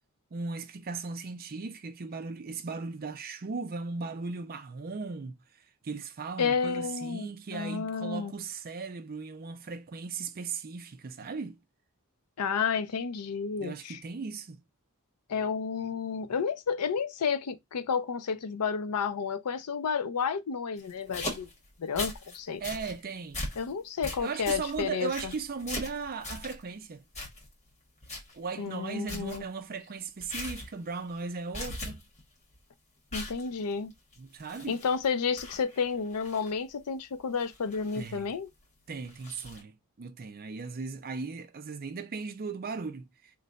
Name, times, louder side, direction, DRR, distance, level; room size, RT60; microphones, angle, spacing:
voice 1, 0.3-5.4 5.8-11.6 13.6-14.6 22.6-23.4 24.2-27.0 28.3-32.0 34.2-34.8 37.9-38.3 38.9-43.1, right 4 dB, 40° right, 0.5 m, -37 dB
voice 2, 6.4-8.3 12.4-14.0 15.3-21.5 21.8-22.6 23.6-25.3 28.6-29.4 33.1-33.9 34.7-38.5, left 6 dB, 90° left, 0.5 m, -31 dB
sound 1, 20.8-22.4 22.6-22.9 23.3-23.7 24.0-26.6 27.1-27.7 28.0-28.4 28.7-28.8 29.1-29.4 30.2-30.7 31.0-31.3 31.5-32.2 32.5-32.6 33.1-35.1 35.4-36.5 37.3-38.3 39.0-39.6, left 2 dB, 30° left, 1.4 m, -40 dB
3.2 x 2.2 x 3.8 m
head